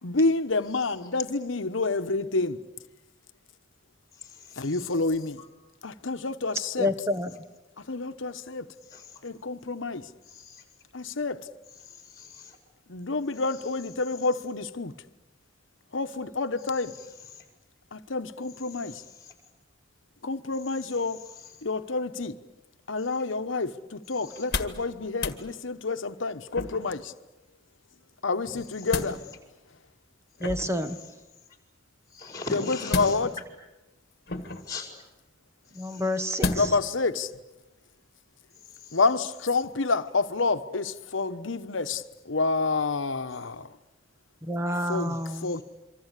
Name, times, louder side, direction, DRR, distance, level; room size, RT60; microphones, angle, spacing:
voice 1, 0.0-2.6 4.6-5.4 5.8-6.9 7.8-8.7 9.2-10.1 10.9-11.5 12.9-14.9 15.9-16.9 17.9-19.0 20.2-21.3 21.6-22.4 22.9-27.1 28.2-29.2 32.5-33.3 36.5-37.3 38.9-43.7 44.9-45.2 45.4-45.6, left 3 dB, 80° left, 1.1 m, -28 dB
voice 2, 4.1-5.5 8.8-9.2 10.2-10.6 11.7-12.6 13.3-13.7 16.6-17.5 18.7-19.3 20.7-21.6 23.0-23.1 24.1-24.5 28.6-28.9 30.9-31.1 31.5-31.6 32.1-33.2 34.6-35.0 35.8-36.5 38.5-39.0 45.2-45.6, left 4 dB, 20° left, 5.2 m, -44 dB
voice 3, 6.8-7.3 30.4-31.0 35.8-36.8 44.4-45.5, left 1 dB, 15° right, 1.2 m, -29 dB
sound 1, 24.3-24.9 25.1-25.4 26.5-27.0 28.5-29.2 30.4-30.9 32.9-33.5 34.3-34.8 36.4-36.9 37.3-37.4, left 3 dB, 50° left, 1.8 m, -31 dB
27.0 x 25.0 x 8.3 m
head